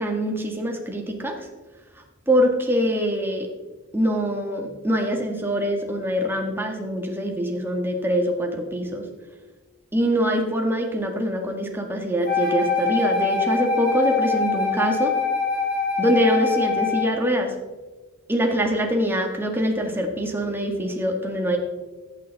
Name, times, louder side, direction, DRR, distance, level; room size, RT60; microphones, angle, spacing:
voice 1, 0.0-1.5 2.3-3.5 3.9-9.0 9.9-15.1 16.0-17.5 18.3-21.6, equal, 10° right, 1 dB, 1.8 m, -24 dB
Wind instrument woodwind instrument, 12.2-17.1, left 4 dB, 45° left, 3.0 m, -24 dB
15.0 x 8.8 x 4.1 m, 1.2 s
head